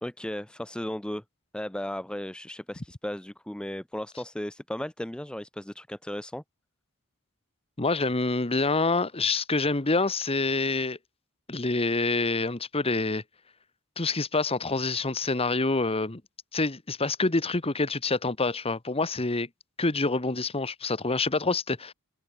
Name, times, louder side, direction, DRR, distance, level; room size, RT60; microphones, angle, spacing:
voice 1, 0.0-1.2 1.5-6.4, left 1 dB, 5° left, 0.5 m, -35 dB
voice 2, 7.8-11.0 11.5-13.2 14.0-16.2 16.5-19.5 19.8-21.9, left 3 dB, 25° left, 1.3 m, -26 dB
open air
head